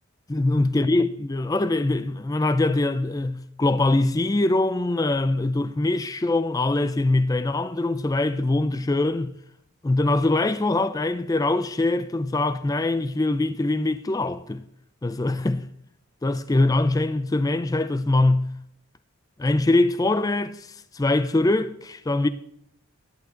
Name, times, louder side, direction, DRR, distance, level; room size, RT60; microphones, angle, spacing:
voice 1, 0.3-9.3 9.8-14.6 15.0-15.7 16.2-18.5 19.4-22.3, left 2 dB, 15° left, 0.4 m, -23 dB
13.5 x 11.0 x 3.9 m
head